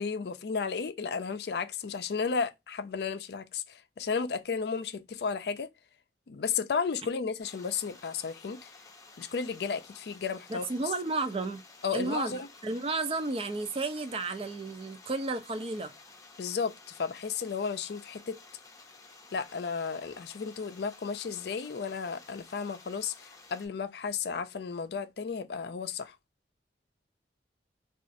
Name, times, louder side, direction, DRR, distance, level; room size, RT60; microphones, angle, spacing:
voice 1, 0.0-5.7 6.3-8.7 9.2-10.7 11.8-12.5 16.4-18.4 19.3-26.2, left 5 dB, 65° left, 0.4 m, -33 dB
sound 1, 7.4-23.7, left 3 dB, 20° left, 0.7 m, -54 dB
voice 2, 10.5-11.6 11.9-15.9, right 3 dB, 30° right, 0.4 m, -32 dB
3.9 x 2.4 x 2.5 m
head